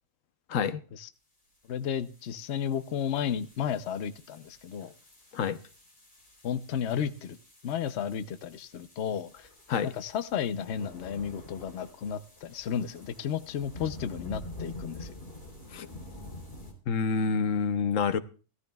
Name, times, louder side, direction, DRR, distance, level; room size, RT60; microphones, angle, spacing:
voice 1, 0.5-0.8 5.3-5.6 9.7-9.9 15.7-15.9 16.9-18.2, left 5 dB, 80° left, 1.1 m, -27 dB
sound 1, 1.5-16.7, left 2 dB, 45° left, 3.8 m, -47 dB
voice 2, 1.7-4.9 6.4-7.4 7.6-9.5 9.9-15.1, left 8 dB, 65° left, 0.9 m, -33 dB
17.5 x 13.5 x 2.3 m
omnidirectional pair, 1.3 m